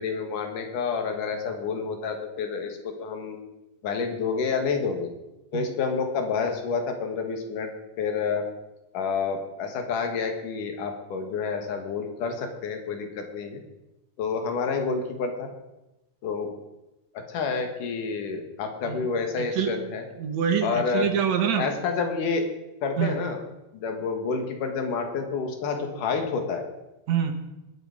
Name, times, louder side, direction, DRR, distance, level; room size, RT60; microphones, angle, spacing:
voice 1, 0.0-3.4 3.8-5.1 5.5-7.7 8.0-8.5 8.9-13.6 14.2-15.5 16.2-16.5 17.1-20.0 20.6-21.1 21.6-22.4 22.8-23.4 23.7-26.6, left 5 dB, 90° left, 5 dB, 3.2 m, -29 dB
voice 2, 19.4-19.7 20.2-21.7 23.0-23.2 27.1-27.3, right 8 dB, 65° right, 7 dB, 2.4 m, -25 dB
20.5 x 8.2 x 4.9 m, 0.97 s
omnidirectional pair, 3.6 m